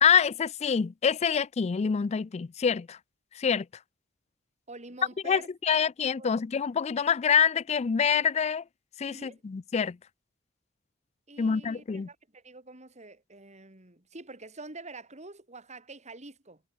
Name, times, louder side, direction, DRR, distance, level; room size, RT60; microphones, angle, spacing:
voice 1, 0.0-3.0 3.4-3.7 5.3-8.6 9.0-10.0 11.4-12.1, left 7 dB, 30° left, 0.3 m, -26 dB
voice 2, 4.7-5.8 6.2-6.4 9.1-9.4 11.3-16.6, right 3 dB, 35° right, 4.3 m, -46 dB
head